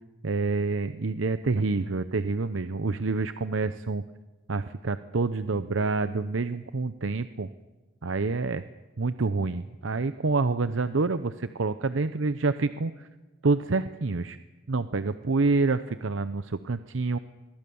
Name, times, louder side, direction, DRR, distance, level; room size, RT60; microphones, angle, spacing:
voice 1, 0.2-4.0 4.5-7.5 8.0-8.6 9.0-13.1 13.4-14.4 14.7-17.2, right 3 dB, 85° right, 12 dB, 0.7 m, -27 dB
25.5 x 22.0 x 7.1 m, 1.2 s
head